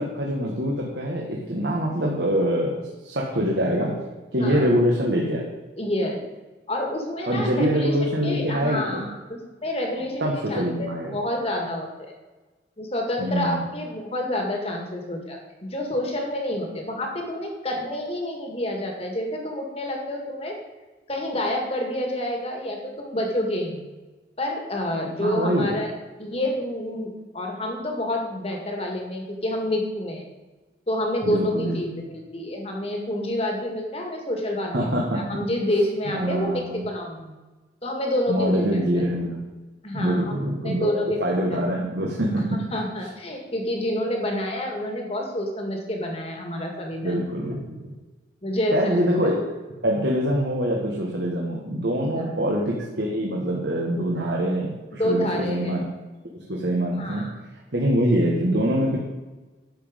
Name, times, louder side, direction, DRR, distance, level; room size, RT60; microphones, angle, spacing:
voice 1, 0.0-3.9 4.3-5.4 7.3-9.0 10.2-11.2 13.2-13.6 25.2-25.8 31.2-32.1 34.7-35.2 36.1-36.8 38.3-39.4 39.9-40.9 41.2-42.6 47.0-47.8 48.7-49.3 49.8-55.8 56.3-57.2 57.7-59.0, equal, 70° right, -2 dB, 1.6 m, -24 dB
voice 2, 4.4-4.7 5.8-6.2 6.7-7.9 8.2-12.1 12.8-20.6 21.1-23.8 24.4-25.9 26.2-30.2 30.9-37.3 37.8-38.7 39.8-41.4 42.7-47.2 48.4-49.3 52.1-52.2 54.9-55.7 56.9-57.3, left 1 dB, 35° left, 1 dB, 2.0 m, -28 dB
11.5 x 7.5 x 5.2 m, 1.2 s
head